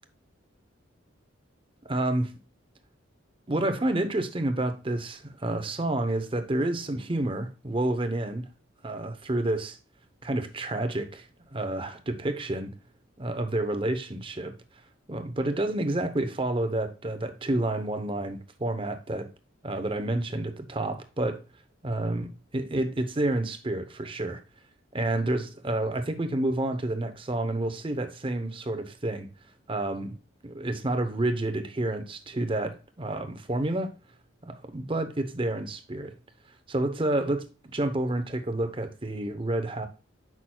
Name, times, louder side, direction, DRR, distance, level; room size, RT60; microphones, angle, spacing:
voice 1, 1.9-2.3 3.5-8.5 8.8-9.8 10.2-11.3 11.5-12.7 13.2-14.6 15.1-19.3 19.6-21.4 21.8-24.4 24.9-29.3 29.7-30.1 30.4-33.9 34.4-36.1 36.7-39.9, right 1 dB, 25° right, 0.8 m, -29 dB
8.7 x 6.0 x 2.3 m
head